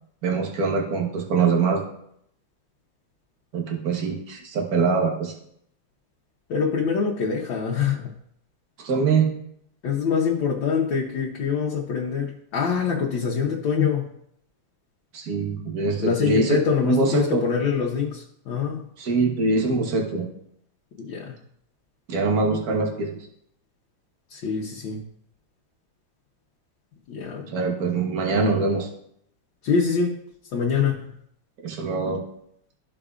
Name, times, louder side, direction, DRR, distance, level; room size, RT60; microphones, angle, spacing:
voice 1, 0.2-1.8 3.5-5.3 8.8-9.3 15.1-17.4 19.0-20.3 22.1-23.2 27.5-28.9 31.6-32.2, right 4 dB, 55° right, 0 dB, 1.6 m, -23 dB
voice 2, 6.5-8.1 9.8-14.0 16.0-18.8 21.0-21.4 24.3-25.0 27.1-27.5 29.6-30.1 30.5-31.1, left 6 dB, 85° left, -3 dB, 1.7 m, -24 dB
14.0 x 4.9 x 2.5 m, 0.72 s
omnidirectional pair, 2.0 m